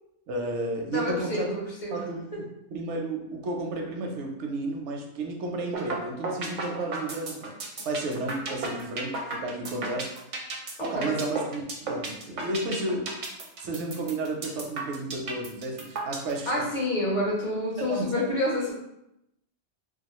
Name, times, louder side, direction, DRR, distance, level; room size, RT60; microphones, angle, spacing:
voice 1, 0.3-1.6 1.9-7.5 7.8-10.1 10.8-13.2 13.6-16.7 17.8-18.3, right 2 dB, 85° right, 1 dB, 0.9 m, -32 dB
voice 2, 0.9-2.0 10.9-11.2 16.5-18.7, left 1 dB, 50° left, -4 dB, 0.7 m, -28 dB
sound 1, 5.7-6.0 6.2-16.3, right 3 dB, 55° right, 0.5 m, -33 dB
2.4 x 2.3 x 2.9 m, 0.84 s
omnidirectional pair, 1.2 m